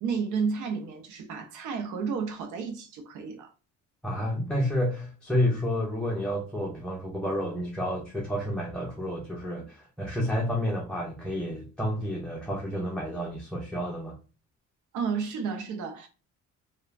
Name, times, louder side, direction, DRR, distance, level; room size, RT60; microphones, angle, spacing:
voice 1, 0.0-3.5 14.9-16.1, right 5 dB, 70° right, 0.6 m, -31 dB
voice 2, 4.0-14.2, equal, 5° left, 0.6 m, -30 dB
3.0 x 2.2 x 2.4 m
cardioid pair, 95°, 31 cm